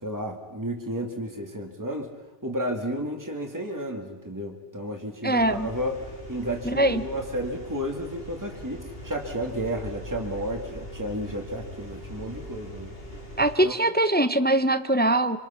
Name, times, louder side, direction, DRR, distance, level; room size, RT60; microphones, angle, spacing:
voice 1, 0.0-2.1 2.4-6.0 6.3-13.0 13.6-13.7, equal, 15° right, 2 dB, 2.4 m, -32 dB
voice 2, 5.2-5.7 6.7-7.0 13.4-15.4, right 1 dB, 10° left, 11 dB, 0.6 m, -22 dB
sound 1, 5.4-13.6, equal, 65° left, 3.8 m, -41 dB
26.5 x 26.0 x 5.9 m, 1.1 s
omnidirectional pair, 1.1 m